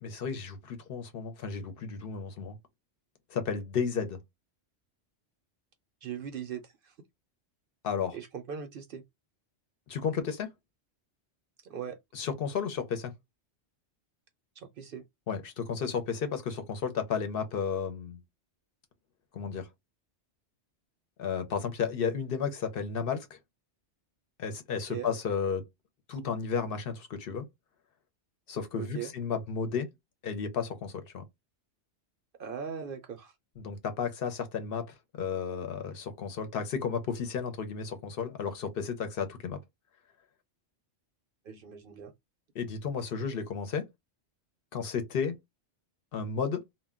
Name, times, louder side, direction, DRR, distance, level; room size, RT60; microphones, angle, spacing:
voice 1, 0.0-2.6 3.3-4.2 7.8-8.2 9.9-10.5 12.1-13.1 15.3-18.2 19.3-19.7 21.2-23.4 24.4-25.6 26.1-27.5 28.5-29.9 30.2-31.2 33.6-39.6 42.5-43.9 44.7-45.4 46.1-46.6, left 6 dB, 60° left, 0.7 m, -33 dB
voice 2, 6.0-6.9 8.1-9.0 11.6-12.0 14.6-15.0 24.9-25.1 28.7-29.1 32.4-33.3 41.5-42.1, right 8 dB, 60° right, 0.6 m, -39 dB
2.1 x 2.1 x 3.5 m
omnidirectional pair, 1.2 m